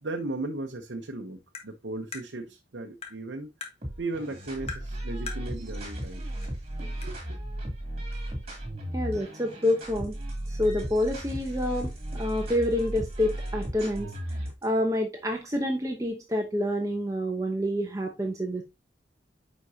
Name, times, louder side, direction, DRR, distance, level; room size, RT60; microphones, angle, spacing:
voice 1, 0.0-3.5 4.0-6.2 7.0-7.2, right 2 dB, 70° right, 0.8 m, -36 dB
Tap, 1.5-1.7 2.1-2.3 3.0-3.2 3.6-3.8 4.7-4.9 5.3-5.5 6.4-6.5 7.0-7.1, left 5 dB, 35° left, 1.6 m, -39 dB
sound 1, 3.8-14.6, right 1 dB, 35° right, 2.9 m, -35 dB
voice 2, 8.9-10.1 10.5-14.1 14.6-18.6, left 1 dB, 15° right, 0.9 m, -28 dB
9.6 x 5.1 x 2.8 m
head